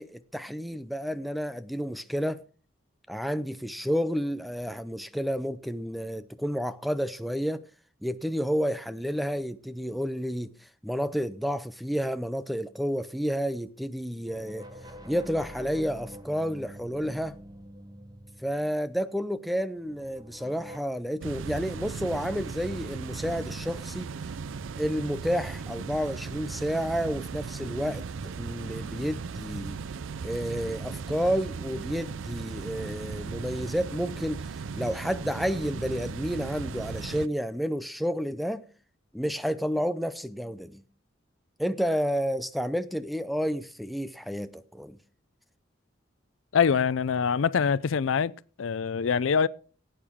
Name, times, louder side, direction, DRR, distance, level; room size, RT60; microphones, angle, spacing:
voice 1, 0.0-2.4 3.1-7.6 8.0-10.5 10.8-14.6 15.1-17.4 18.4-24.1 24.8-29.8 30.2-34.5 34.7-38.7 39.1-40.8 41.6-45.0, equal, ahead, 0.5 m, -30 dB
sound 1, 14.3-19.2 19.7-20.8, equal, 20° right, 1.3 m, -46 dB
sound 2, 21.2-37.3, right 5 dB, 80° right, 0.5 m, -37 dB
voice 2, 46.5-48.3 48.6-49.5, left 6 dB, 85° left, 0.5 m, -24 dB
17.0 x 8.8 x 3.6 m
head